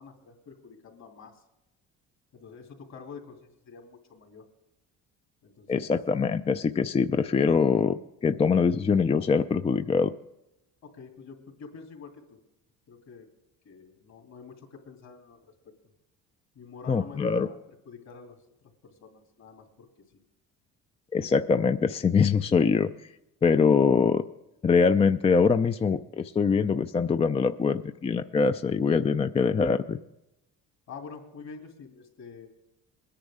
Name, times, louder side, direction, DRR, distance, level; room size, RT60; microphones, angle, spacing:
voice 1, 0.0-1.4 2.3-4.4 5.4-5.9 10.8-12.4 12.9-13.3 13.6-15.4 16.5-17.6 17.8-18.4 18.8-19.9 20.1-20.2 30.9-32.5, left 5 dB, 60° left, 3 dB, 2.8 m, -47 dB
voice 2, 5.7-10.1 16.9-17.5 21.1-22.9 23.4-24.2 24.6-30.0, left 5 dB, 20° left, 9 dB, 0.4 m, -23 dB
21.0 x 10.0 x 3.6 m, 0.91 s
cardioid pair, 105°, 32 cm